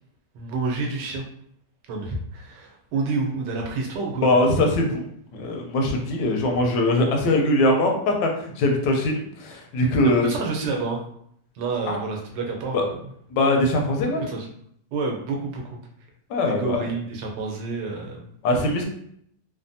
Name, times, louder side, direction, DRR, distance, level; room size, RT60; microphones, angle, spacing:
voice 1, 0.3-1.2 1.9-4.4 10.0-11.0 11.5-12.9 13.4-13.5 14.3-14.5 14.9-15.8 16.5-18.6, right 4 dB, 90° right, 1 dB, 1.3 m, -29 dB
voice 2, 4.2-5.1 5.3-10.3 11.9-12.0 12.7-12.8 13.3-14.2 16.3-16.9 18.4-18.8, left 1 dB, 85° left, 2 dB, 1.2 m, -21 dB
3.3 x 2.0 x 2.6 m, 0.69 s
omnidirectional pair, 1.8 m